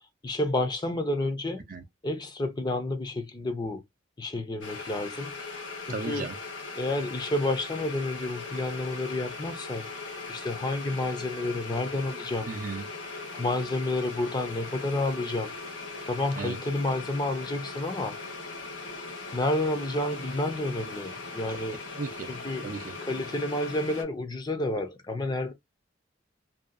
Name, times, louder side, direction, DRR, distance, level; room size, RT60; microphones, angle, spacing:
voice 1, 0.2-1.6 2.0-3.8 4.2-6.3 6.8-9.9 10.3-12.5 13.3-15.5 16.1-18.2 19.3-21.8 22.3-22.7 23.0-25.5, left 2 dB, 20° left, 0.5 m, -30 dB
sound 1, 4.6-24.0, left 3 dB, 75° left, 1.1 m, -39 dB
voice 2, 5.9-6.4 12.5-12.9 16.4-16.6 21.5-21.6 21.9-22.3 22.6-23.0, right 4 dB, 45° right, 0.5 m, -35 dB
2.7 x 2.2 x 2.4 m
head